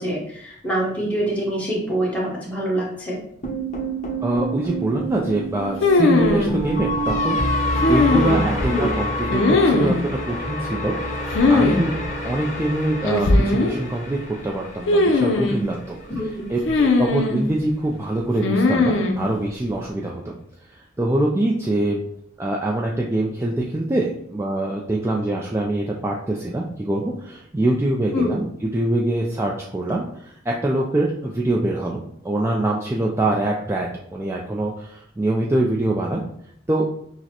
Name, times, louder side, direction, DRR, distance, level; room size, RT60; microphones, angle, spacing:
voice 1, 0.0-3.2 8.6-8.9 16.0-16.5 28.1-28.3, equal, 10° left, -5 dB, 1.1 m, -25 dB
sound 1, 3.4-15.6, equal, 40° left, 1.0 m, -27 dB
voice 2, 4.2-11.2 11.5-11.9 12.2-16.0 16.5-20.3 20.7-22.0 22.4-28.4 28.7-36.2 36.7-36.8, right 1 dB, 15° right, -2 dB, 0.3 m, -24 dB
sound 2, 5.8-6.5 7.8-8.6 9.3-10.0 11.3-11.8 12.0-12.1 13.0-13.7 14.9-15.6 16.7-17.4 18.4-19.2, left 2 dB, 75° left, 0.5 m, -18 dB
6.2 x 2.1 x 2.9 m, 0.69 s
head